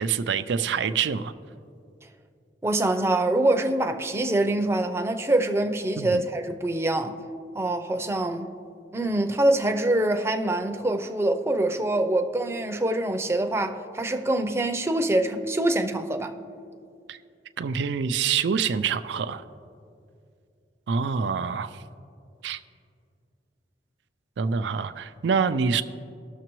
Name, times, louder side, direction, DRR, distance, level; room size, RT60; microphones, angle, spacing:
voice 1, 0.0-1.3 6.0-6.2 17.1-17.2 17.6-19.4 20.9-21.7 22.4-22.6 24.4-25.8, right 6 dB, 85° right, 0.4 m, -26 dB
voice 2, 2.6-7.2 7.5-8.5 8.9-16.3, right 1 dB, 15° right, 0.5 m, -25 dB
19.5 x 6.7 x 3.1 m
head